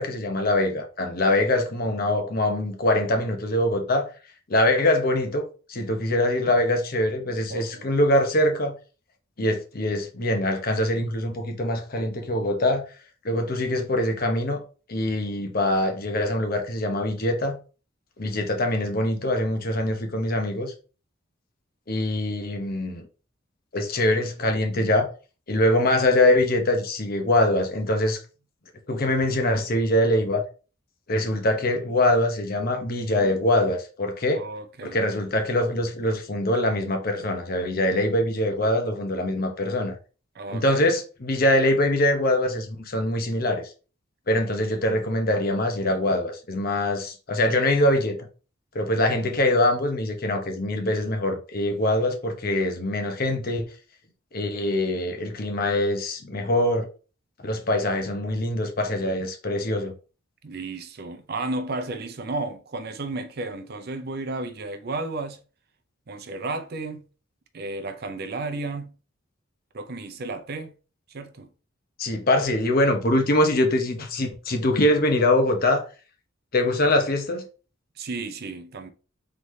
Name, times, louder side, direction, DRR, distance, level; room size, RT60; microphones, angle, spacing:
voice 1, 0.0-4.1 4.5-8.7 9.4-12.8 13.2-14.6 14.9-17.6 18.2-20.7 21.9-23.1 23.7-25.1 25.5-28.2 28.9-30.4 31.1-34.4 34.8-40.0 40.5-43.7 44.3-48.2 48.7-53.7 54.3-56.9 57.4-59.9 72.0-75.8 76.5-77.5, left 1 dB, 45° left, 0.8 m, -23 dB
voice 2, 7.5-7.9 34.3-35.0 40.3-40.8 60.4-65.4 66.1-67.1 67.5-68.9 69.7-70.7 71.1-71.5 78.0-78.9, right 2 dB, 50° right, 0.5 m, -33 dB
3.9 x 3.3 x 3.1 m
head